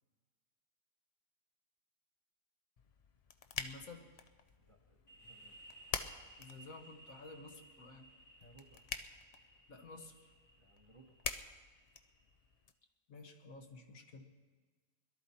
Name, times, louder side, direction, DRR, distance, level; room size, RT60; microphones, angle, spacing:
sound 1, 2.8-12.7, left 5 dB, 60° left, 0.4 m, -47 dB
voice 1, 3.6-4.1 6.4-8.1 9.7-10.3 13.1-14.2, left 3 dB, 75° left, 3 dB, 1.7 m, -52 dB
voice 2, 4.6-5.6 8.4-8.9 10.6-11.2, right 3 dB, 25° right, 2 dB, 0.9 m, -63 dB
sound 2, 5.1-12.5, right 1 dB, 25° left, 1.1 m, -60 dB
21.5 x 12.5 x 4.2 m, 1.4 s
omnidirectional pair, 1.5 m